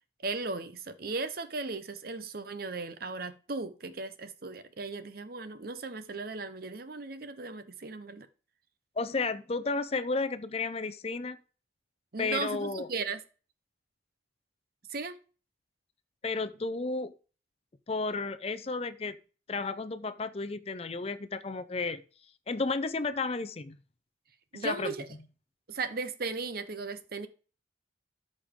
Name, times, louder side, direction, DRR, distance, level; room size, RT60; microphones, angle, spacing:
voice 1, 0.2-8.3 12.1-13.2 14.9-15.2 24.5-25.1 25.7-27.3, right 3 dB, 50° right, 0.7 m, -36 dB
voice 2, 9.0-11.4 12.2-12.9 16.2-17.1 17.9-19.2 19.5-22.0 22.5-23.8 24.5-24.9, left 3 dB, 30° left, 0.5 m, -32 dB
13.5 x 5.3 x 3.7 m
head